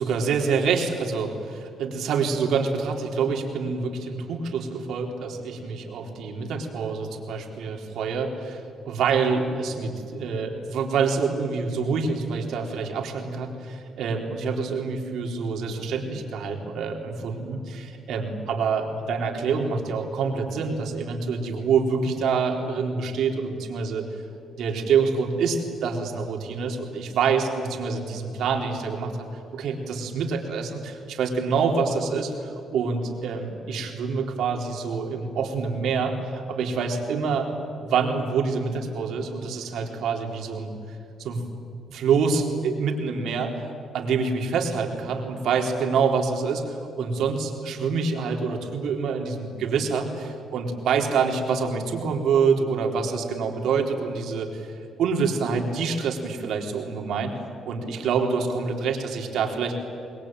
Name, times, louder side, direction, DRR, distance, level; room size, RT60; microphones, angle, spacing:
voice 1, 0.0-24.0 24.5-29.1 29.5-37.5 37.8-41.4 41.9-43.7 43.9-54.7 55.0-57.3 57.7-59.8, right 5 dB, 75° right, 2 dB, 3.9 m, -26 dB
26.0 x 21.0 x 9.2 m, 2.5 s
cardioid pair, 90°, 0 cm